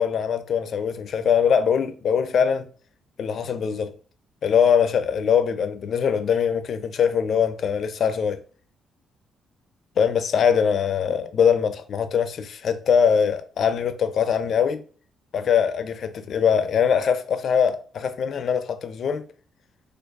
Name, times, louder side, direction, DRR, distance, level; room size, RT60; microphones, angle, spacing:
voice 1, 0.0-2.7 3.2-3.9 4.4-8.4 10.0-14.8 15.3-19.2, left 7 dB, 60° left, 0.4 m, -22 dB
4.5 x 2.4 x 2.3 m
cardioid pair, 90°, 0 cm